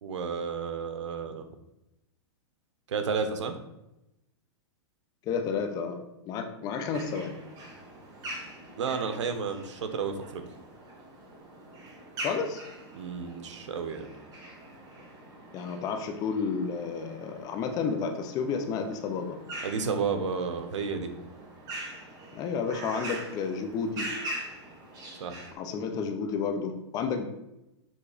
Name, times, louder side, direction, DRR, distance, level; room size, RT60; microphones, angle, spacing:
voice 1, 0.0-1.4 2.9-3.5 8.8-10.4 12.9-14.1 19.6-21.1 25.2-25.4, right 5 dB, 90° right, 8 dB, 1.0 m, -31 dB
voice 2, 5.3-6.0 6.3-7.4 12.2-12.6 15.5-19.4 22.3-24.1 25.6-27.3, left 5 dB, 25° left, 6 dB, 0.7 m, -31 dB
sound 1, 6.9-25.5, right 1 dB, 25° right, 1.4 m, -43 dB
7.0 x 3.2 x 4.9 m, 0.91 s
supercardioid pair, 160°, 15 cm